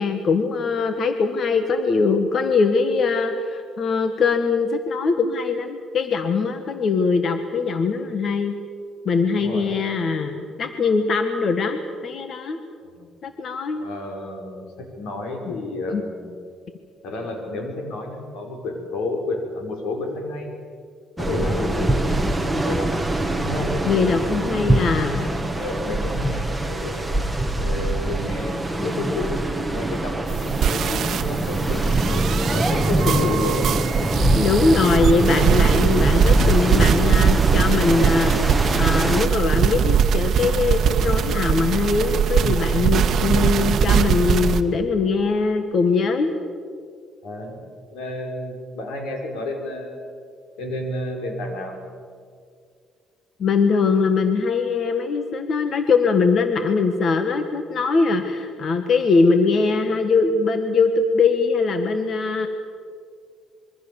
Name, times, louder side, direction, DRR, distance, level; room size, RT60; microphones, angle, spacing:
voice 1, 0.0-8.6 9.0-12.6 13.2-13.8 15.4-15.5 15.9-16.0 23.8-25.3 33.1-33.4 34.3-38.5 38.7-46.3 53.4-62.5, left 4 dB, 40° left, 7 dB, 1.5 m, -21 dB
voice 2, 9.3-9.7 12.8-13.0 13.7-16.3 17.0-20.5 21.2-24.6 25.5-27.1 27.6-33.8 47.2-47.6 47.9-50.0 50.6-51.8, left 2 dB, 90° left, 2 dB, 5.7 m, -31 dB
sound 1, 21.2-39.3, right 1 dB, 5° right, 1.5 m, -23 dB
sound 2, 30.3-44.6, right 7 dB, 50° right, 1.3 m, -21 dB
26.0 x 23.0 x 7.1 m, 2.2 s
cardioid pair, 145°, 0 cm